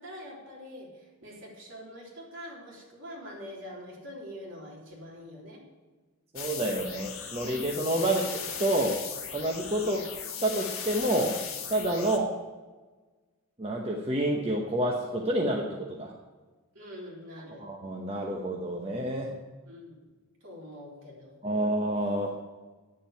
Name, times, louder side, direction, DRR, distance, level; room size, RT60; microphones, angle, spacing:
voice 1, 0.0-5.6 9.8-10.1 12.0-12.2 16.7-17.7 19.7-20.1 20.4-21.4, equal, 55° right, -3 dB, 3.7 m, -45 dB
voice 2, 6.3-8.2 8.6-9.0 9.3-10.0 10.4-11.4 11.7-12.3 13.6-16.1 17.6-19.4 21.4-22.3, right 1 dB, 25° right, 0 dB, 1.0 m, -28 dB
sound 1, 6.4-12.2, left 7 dB, 70° left, 1.7 m, -38 dB
9.9 x 7.3 x 9.3 m, 1.3 s
head